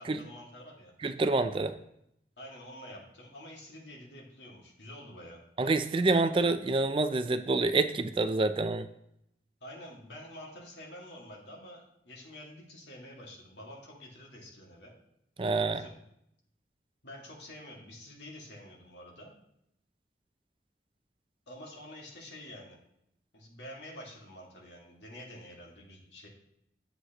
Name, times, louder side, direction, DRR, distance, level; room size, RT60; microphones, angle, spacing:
voice 1, 0.0-0.9 2.4-5.4 9.6-15.0 15.7-15.9 17.0-19.3 21.5-22.8 23.3-26.3, left 1 dB, 80° left, -2 dB, 2.1 m, -48 dB
voice 2, 1.0-1.8 5.6-8.9 15.4-15.8, right 3 dB, 30° right, 10 dB, 0.4 m, -27 dB
10.0 x 7.9 x 3.0 m, 0.77 s
head